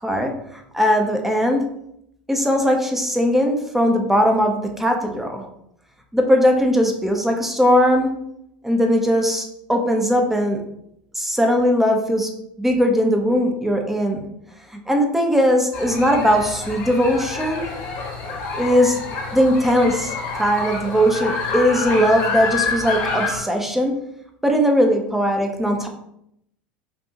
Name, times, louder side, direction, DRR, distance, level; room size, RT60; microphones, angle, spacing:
voice 1, 0.0-1.6 2.3-5.5 6.1-8.1 8.6-10.6 11.1-12.3 12.6-14.3 14.7-17.7 18.5-19.0 19.3-23.9 24.4-25.9, equal, 5° right, 3 dB, 0.8 m, -19 dB
sound 1, 15.7-23.4, left 4 dB, 55° left, 1.4 m, -28 dB
5.4 x 2.6 x 2.9 m, 0.76 s
hypercardioid pair, 80°, 5 cm